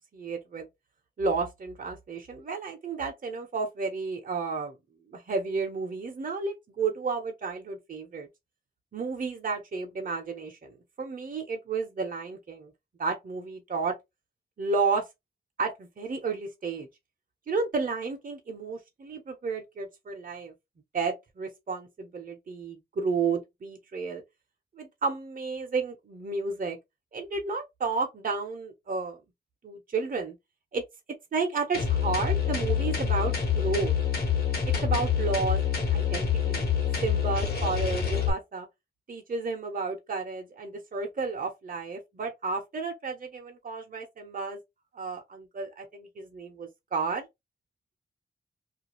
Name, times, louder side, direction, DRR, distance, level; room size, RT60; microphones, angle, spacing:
voice 1, 0.1-0.7 1.2-4.8 5.1-8.3 8.9-12.7 13.0-13.9 14.6-15.1 15.6-16.9 17.5-20.5 20.9-24.2 24.7-26.8 27.1-29.2 29.6-30.3 30.7-30.8 31.3-34.0 34.8-36.7 37.0-38.7 39.1-44.6 44.9-47.3, right 4 dB, 50° right, 0.7 m, -32 dB
sound 1, 31.7-38.3, left 8 dB, 65° left, 1.1 m, -26 dB
2.5 x 2.3 x 3.0 m
wide cardioid pair, 80°, 18 cm